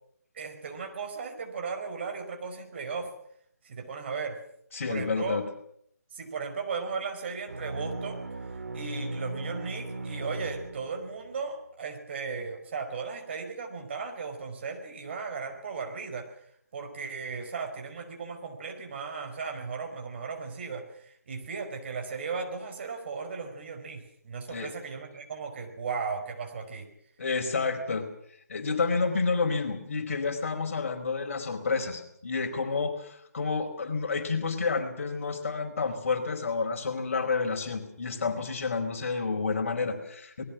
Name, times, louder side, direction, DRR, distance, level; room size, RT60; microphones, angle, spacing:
voice 1, 0.3-3.1 3.6-4.4 4.9-5.4 6.1-8.2 8.7-16.3 16.7-26.9, right 5 dB, 40° right, 4 dB, 5.2 m, -36 dB
voice 2, 4.7-5.4 24.5-24.7 27.2-28.0 28.5-40.4, left 4 dB, 50° left, 4 dB, 4.6 m, -29 dB
sound 1, 7.5-11.3, right 2 dB, 65° right, 2.9 m, -37 dB
27.5 x 21.0 x 6.1 m, 0.69 s
figure-of-eight pair, 150°, 9 cm